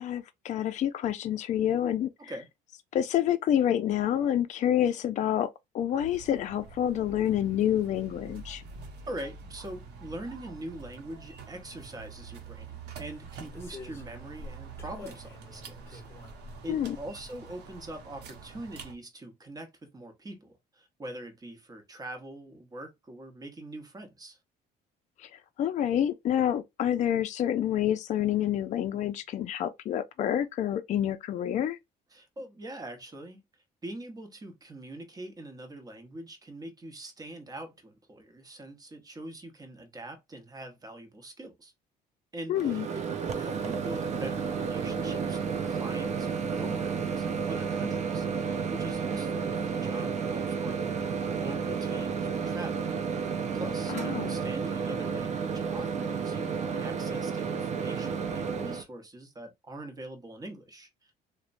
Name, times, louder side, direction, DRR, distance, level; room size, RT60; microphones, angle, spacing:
voice 1, 0.0-2.3 2.9-5.5 5.7-8.6 16.7-17.0 25.2-31.8 42.5-42.9 53.9-54.3, left 10 dB, 45° left, 0.4 m, -28 dB
sound 1, 6.0-18.9, right 4 dB, 80° right, 0.8 m, -46 dB
voice 2, 9.1-16.0 16.6-24.4 32.1-33.4 33.8-41.7 42.3-43.0 43.3-51.1 51.4-52.9 53.5-61.1, right 1 dB, 20° right, 0.9 m, -43 dB
sound 2, 12.1-12.3 13.0-14.1 14.8-17.0 17.3-17.8 18.1-18.2, left 3 dB, 15° left, 1.1 m, -49 dB
Microwave oven, 42.6-58.8, right 6 dB, 45° right, 0.5 m, -31 dB
3.0 x 2.1 x 2.5 m
cardioid pair, 110°, 17 cm